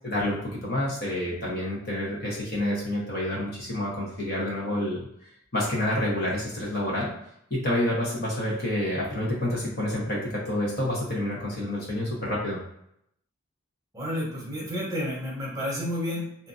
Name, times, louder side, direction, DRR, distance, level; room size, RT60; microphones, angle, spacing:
voice 1, 0.0-5.1 5.5-7.1 7.5-12.6, left 1 dB, 50° left, -5 dB, 0.9 m, -28 dB
voice 2, 13.9-16.5, left 1 dB, 15° right, -5 dB, 0.8 m, -31 dB
2.7 x 2.4 x 2.5 m, 0.74 s
head